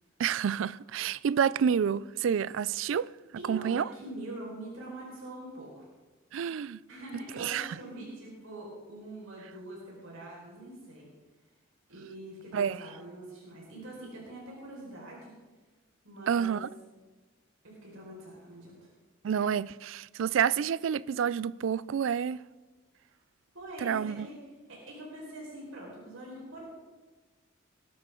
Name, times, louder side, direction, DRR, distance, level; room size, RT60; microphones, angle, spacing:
voice 1, 0.2-3.1 3.5-3.9 6.3-6.8 7.4-7.7 12.5-12.8 16.3-16.7 19.2-22.4 23.8-24.3, right 8 dB, 65° right, 0.3 m, -29 dB
voice 2, 3.4-5.8 6.9-11.1 11.9-15.3 16.0-16.6 17.6-18.9 23.5-24.4 24.7-26.7, right 1 dB, 85° right, 4.9 m, -44 dB
19.5 x 12.0 x 3.8 m
head